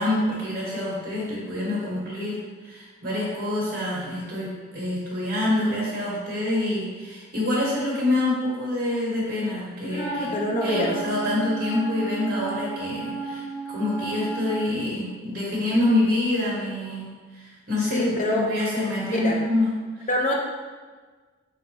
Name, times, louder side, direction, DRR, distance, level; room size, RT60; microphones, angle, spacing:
voice 1, 0.0-10.3 10.6-19.7 20.0-20.1, left 1 dB, 40° right, -7 dB, 1.2 m, -26 dB
voice 2, 9.8-10.9 17.9-18.4 19.1-19.4 20.1-20.3, left 1 dB, 35° left, 0 dB, 0.5 m, -25 dB
Wind instrument woodwind instrument, 9.9-14.7, right 4 dB, 55° left, 1.0 m, -34 dB
4.3 x 3.7 x 2.9 m, 1.4 s
head